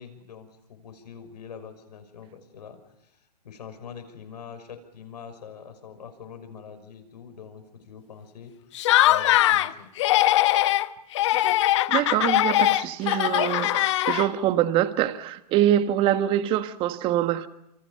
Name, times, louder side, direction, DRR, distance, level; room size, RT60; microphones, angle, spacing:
voice 1, 0.0-8.5 8.8-9.9, left 7 dB, 75° left, 6.1 m, -44 dB
Laughter, 8.8-9.7 10.0-10.9 11.2-14.5, left 15 dB, 45° left, 1.0 m, -21 dB
voice 2, 11.9-17.5, right 12 dB, 25° right, 1.4 m, -24 dB
28.0 x 26.5 x 5.7 m
hypercardioid pair, 150°, 21 cm